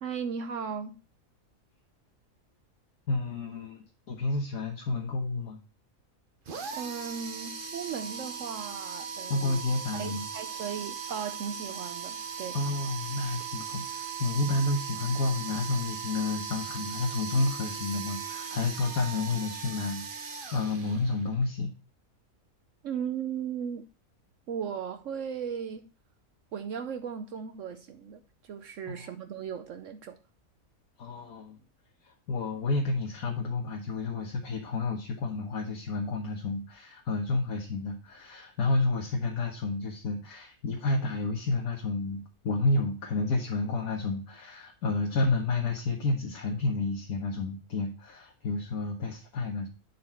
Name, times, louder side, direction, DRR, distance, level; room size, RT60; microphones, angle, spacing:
voice 1, 0.0-0.9 6.7-9.6 9.9-12.6 22.8-23.9 24.5-25.8 26.5-30.2, right 7 dB, 65° right, 1.0 m, -37 dB
voice 2, 3.1-5.6 9.3-10.3 12.5-21.7 28.9-29.1 31.0-31.6 32.0-49.7, left 3 dB, 80° left, 1.6 m, -30 dB
sound 1, 6.5-21.3, right 7 dB, 40° right, 1.0 m, -38 dB
11.0 x 4.3 x 4.4 m
omnidirectional pair, 1.5 m